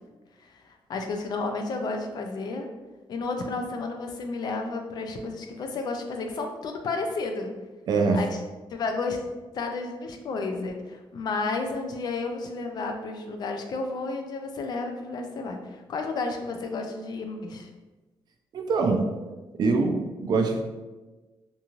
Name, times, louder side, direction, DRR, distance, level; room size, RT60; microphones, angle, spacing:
voice 1, 0.4-2.7 3.1-7.5 8.1-8.4 8.7-9.2 9.5-17.7, left 3 dB, 50° left, 4 dB, 0.3 m, -32 dB
voice 2, 7.9-8.2 18.5-19.1 19.6-20.6, right 4 dB, 50° right, 3 dB, 0.4 m, -23 dB
2.6 x 2.3 x 2.9 m, 1.2 s
cardioid pair, 150°, 9 cm